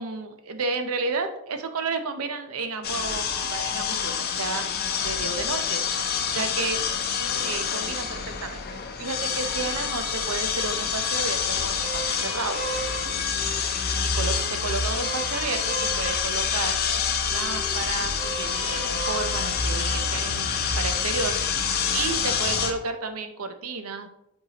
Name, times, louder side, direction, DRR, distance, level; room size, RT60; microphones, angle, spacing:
voice 1, 0.0-4.7 5.0-5.8 6.3-6.8 7.4-12.6 14.1-16.8 17.3-21.4 21.7-24.1, right 4 dB, 85° right, 8 dB, 0.7 m, -32 dB
sound 1, 2.8-22.7, left 6 dB, 45° left, 0.6 m, -27 dB
sound 2, 11.8-20.0, right 4 dB, 40° right, 1.3 m, -37 dB
7.5 x 4.6 x 2.9 m, 0.84 s
head